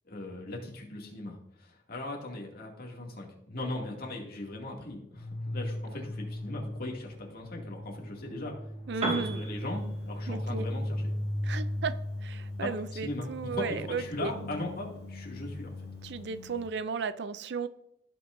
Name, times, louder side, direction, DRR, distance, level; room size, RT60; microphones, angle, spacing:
voice 1, 0.1-8.5 8.9-11.0 12.6-15.7, left 2 dB, 55° left, -2 dB, 2.4 m, -39 dB
sound 1, 5.1-16.7, left 1 dB, 30° left, 3.7 m, -37 dB
Piano, 8.9-16.7, right 2 dB, 35° right, 2.1 m, -43 dB
voice 2, 8.9-9.4 10.3-10.6 11.4-11.9 12.2-14.3 16.0-17.7, right 5 dB, 70° right, 13 dB, 0.5 m, -34 dB
16.5 x 5.7 x 2.6 m, 0.77 s
head